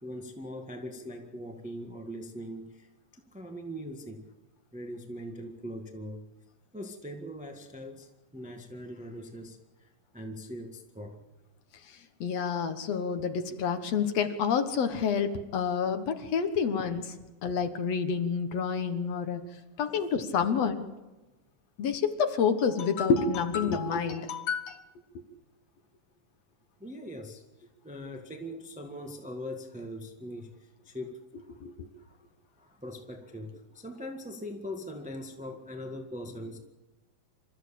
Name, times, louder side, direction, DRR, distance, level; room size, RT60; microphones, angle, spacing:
voice 1, 0.0-4.2 4.7-6.2 6.7-11.2 19.8-20.1 26.8-27.4 27.8-31.6 32.0-32.2 32.6-36.6, equal, 5° right, 3 dB, 0.9 m, -41 dB
voice 2, 12.2-17.1 17.4-19.4 19.8-20.8 21.8-24.8 31.3-31.9, left 6 dB, 60° left, 8 dB, 2.2 m, -28 dB
27.5 x 14.0 x 8.5 m, 1.1 s
omnidirectional pair, 3.6 m